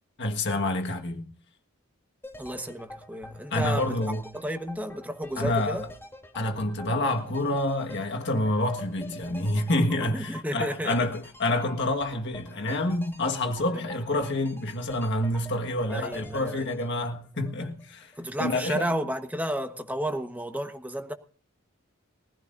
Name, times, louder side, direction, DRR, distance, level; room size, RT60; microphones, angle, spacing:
voice 1, 0.2-1.3 3.5-4.2 5.4-5.9 6.3-18.1 18.4-18.9, left 1 dB, 55° left, 1.6 m, -28 dB
sound 1, 2.2-18.2 18.5-18.6, equal, 10° left, 3.0 m, -47 dB
voice 2, 2.4-5.8 10.0-11.0 15.9-16.7 18.2-21.1, equal, 5° right, 1.2 m, -32 dB
22.0 x 15.5 x 2.6 m
head